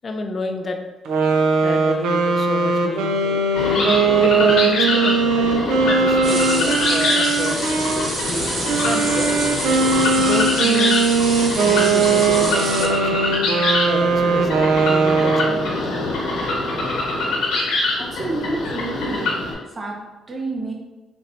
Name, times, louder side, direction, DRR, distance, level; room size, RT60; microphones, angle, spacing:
voice 1, 0.0-0.8 1.6-3.4 4.2-7.7 8.3-9.4 10.1-11.1 11.6-13.3 13.8-16.0, left 3 dB, 40° left, 4 dB, 0.4 m, -30 dB
sound 1, 1.1-8.1 8.7-15.8, right 4 dB, 90° right, 0.4 m, -19 dB
sound 2, 3.5-19.5, left 2 dB, 85° left, 1.0 m, -24 dB
sound 3, 6.2-12.8, right 1 dB, 55° right, 1.3 m, -28 dB
voice 2, 18.0-19.4 19.7-20.7, right 2 dB, 30° right, -1 dB, 0.8 m, -29 dB
4.2 x 2.2 x 2.5 m, 1.1 s
cardioid pair, 90°, 0 cm